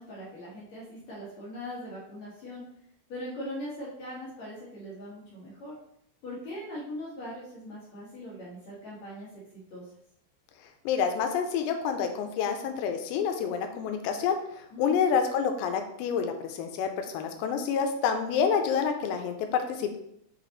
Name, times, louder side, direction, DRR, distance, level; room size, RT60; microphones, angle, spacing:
voice 1, 0.0-2.6 3.1-5.7 6.2-9.3 9.5-9.8 14.7-15.0, equal, 60° left, -7 dB, 1.9 m, -40 dB
voice 2, 10.9-14.4 14.8-20.0, left 6 dB, 85° left, 5 dB, 2.8 m, -28 dB
7.9 x 4.0 x 3.0 m, 0.74 s
omnidirectional pair, 5.2 m